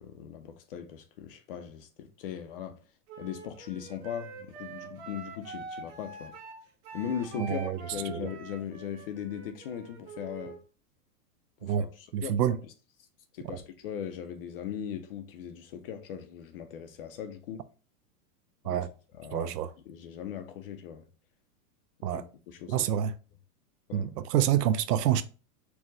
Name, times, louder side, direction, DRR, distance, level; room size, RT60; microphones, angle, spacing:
voice 1, 0.0-2.8 3.2-6.3 6.9-10.6 11.6-12.6 13.3-17.6 18.6-18.8 19.2-19.5 19.9-21.0 22.1-22.9 23.9-24.1, left 9 dB, 40° left, 0.4 m, -39 dB
Wind instrument woodwind instrument, 3.1-10.6, right 3 dB, 45° right, 1.3 m, -45 dB
voice 2, 7.4-7.8 8.1-8.3 11.6-11.8 12.1-12.6 18.6-18.9 19.3-19.7 22.0-22.2 22.7-23.1 23.9-25.2, right 10 dB, 85° right, 0.6 m, -27 dB
4.6 x 2.1 x 3.7 m
supercardioid pair, 150°, 47 cm